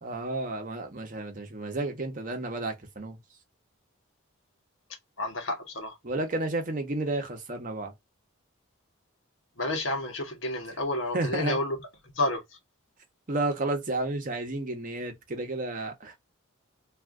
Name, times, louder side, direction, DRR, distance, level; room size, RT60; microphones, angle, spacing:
voice 1, 0.0-3.2 6.0-7.9 11.1-11.6 13.3-16.2, right 2 dB, 40° right, 0.8 m, -31 dB
voice 2, 5.2-5.9 9.6-11.8 12.1-12.4, left 2 dB, 60° left, 0.9 m, -30 dB
2.4 x 2.4 x 3.5 m
head